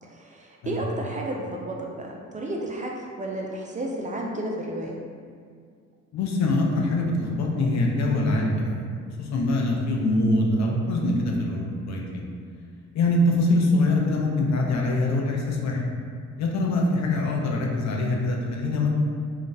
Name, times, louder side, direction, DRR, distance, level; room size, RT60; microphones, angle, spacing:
voice 1, 0.0-5.0, right 1 dB, 25° right, -1 dB, 0.4 m, -32 dB
voice 2, 6.1-8.9 9.2-12.3 12.9-15.8 16.4-18.9, left 2 dB, 65° left, -1 dB, 0.6 m, -24 dB
2.6 x 2.3 x 3.8 m, 2.1 s
cardioid pair, 90°, 30 cm